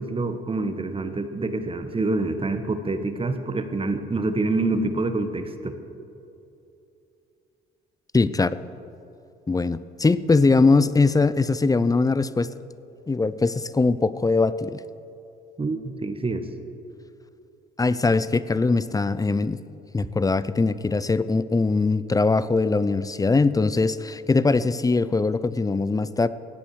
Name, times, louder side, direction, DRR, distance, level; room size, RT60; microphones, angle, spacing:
voice 1, 0.0-5.7 15.6-16.4, right 2 dB, 25° right, 8 dB, 1.2 m, -26 dB
voice 2, 8.1-8.5 9.5-12.5 13.1-14.8 17.8-19.6 19.9-26.3, left 3 dB, 15° left, 16 dB, 0.5 m, -21 dB
17.0 x 8.4 x 6.4 m, 2.8 s
supercardioid pair, 70°, 21 cm